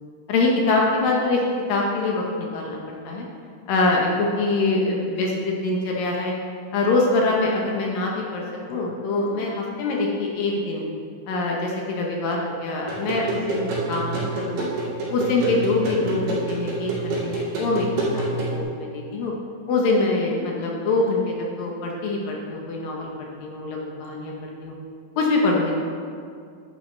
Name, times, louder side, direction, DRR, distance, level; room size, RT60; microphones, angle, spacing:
voice 1, 0.3-1.4 1.7-3.2 3.7-6.3 6.7-10.8 11.3-14.7 15.1-17.9 18.1-19.3 19.7-24.7 25.2-25.7, left 3 dB, 70° left, -1 dB, 2.4 m, -24 dB
sound 1, 12.9-18.6, right 2 dB, 80° right, 4.7 m, -27 dB
11.0 x 9.9 x 3.2 m, 2.2 s
omnidirectional pair, 4.9 m